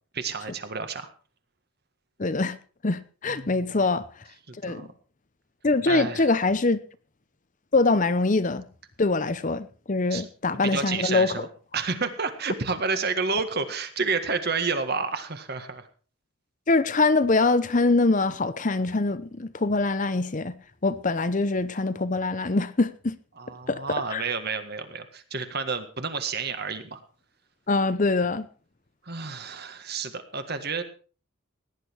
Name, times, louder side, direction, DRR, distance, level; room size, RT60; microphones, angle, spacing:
voice 1, 0.1-1.1 3.3-3.8 4.5-4.9 5.9-6.3 10.1-10.3 10.6-11.5 11.7-15.9 23.4-27.0 29.0-30.8, right 4 dB, 50° right, 1.7 m, -30 dB
voice 2, 2.2-2.6 2.8-4.0 4.6-4.8 5.6-6.8 7.7-8.7 9.0-11.5 16.7-20.5 20.8-23.1 23.7-23.8 24.1-24.2 27.7-28.5, left 3 dB, 35° left, 0.7 m, -23 dB
17.5 x 10.5 x 4.6 m
head